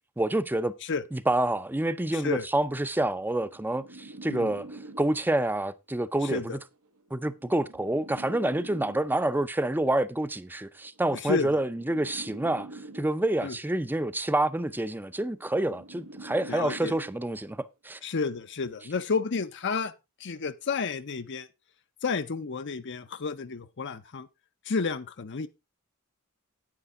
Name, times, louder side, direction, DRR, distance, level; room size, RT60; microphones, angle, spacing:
voice 1, 0.2-0.7 1.1-4.7 5.0-6.6 7.1-18.0, right 1 dB, 10° right, 0.6 m, -28 dB
voice 2, 2.1-2.5 4.3-4.5 6.3-6.6 11.1-11.5 13.4-13.5 16.5-16.9 18.0-19.9 20.2-21.5 22.0-24.3 24.7-25.5, left 4 dB, 55° left, 0.7 m, -31 dB
sound 1, 2.5-5.5 6.5-9.5 10.5-13.5 14.5-17.5 18.5-18.9, right 2 dB, 90° right, 1.2 m, -46 dB
9.8 x 9.1 x 3.6 m
head